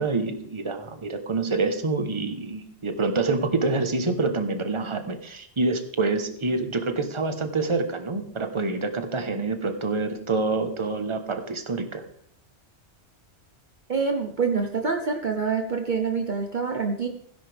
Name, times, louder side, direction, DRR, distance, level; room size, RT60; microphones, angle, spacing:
voice 1, 0.0-12.0, right 3 dB, 25° right, 7 dB, 1.1 m, -27 dB
voice 2, 13.9-17.1, right 5 dB, 45° right, 3 dB, 1.0 m, -26 dB
16.5 x 10.5 x 3.4 m, 0.63 s
omnidirectional pair, 1.2 m